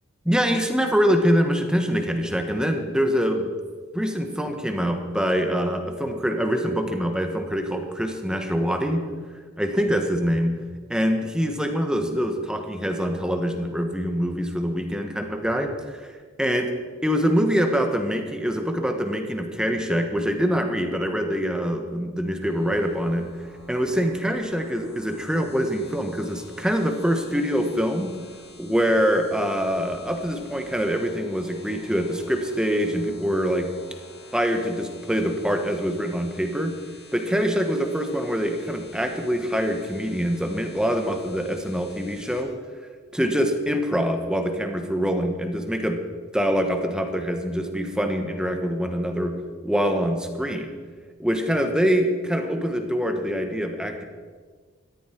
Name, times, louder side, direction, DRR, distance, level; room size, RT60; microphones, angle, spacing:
voice 1, 0.2-3.5 3.9-9.1 9.6-10.6 10.9-16.1 16.4-16.7 17.0-23.3 23.7-28.2 28.6-33.7 34.3-36.8 37.1-42.5 43.1-46.0 46.3-49.4 49.6-50.7 51.2-54.0, equal, 5° right, 5 dB, 1.4 m, -24 dB
sound 1, 22.4-42.4, left 2 dB, 75° left, 5.3 m, -48 dB
19.0 x 14.0 x 4.6 m, 1.5 s
head